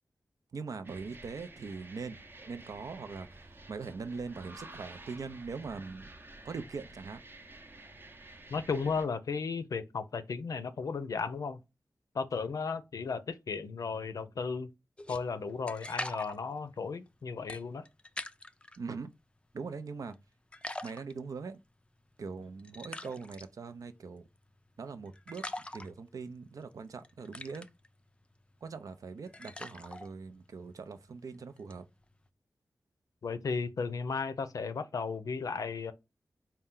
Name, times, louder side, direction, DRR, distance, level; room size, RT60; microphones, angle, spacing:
voice 1, 0.5-2.2 2.5-6.1 6.4-7.2 18.8-19.1 19.5-20.2 20.8-21.6 22.2-24.3 24.8-25.4 25.7-27.7 28.6-31.9, right 4 dB, 80° right, 0.5 m, -41 dB
sound 1, 0.8-9.1, right 2 dB, 40° right, 0.6 m, -51 dB
voice 2, 8.5-11.6 12.1-14.7 15.1-17.9 33.2-35.9, left 5 dB, 80° left, 0.5 m, -35 dB
sound 2, 15.0-18.8 19.2-20.2 20.5-32.3, left 1 dB, 20° left, 0.3 m, -45 dB
4.2 x 2.2 x 3.7 m
wide cardioid pair, 65°, 6 cm